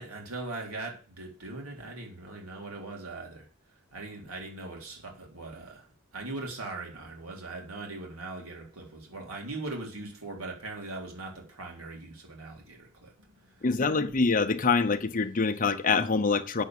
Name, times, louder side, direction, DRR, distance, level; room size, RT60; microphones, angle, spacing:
voice 1, 0.0-13.8, right 2 dB, 80° right, 3.8 m, -40 dB
voice 2, 13.6-16.6, left 4 dB, 40° left, 0.8 m, -25 dB
8.2 x 7.2 x 7.4 m
head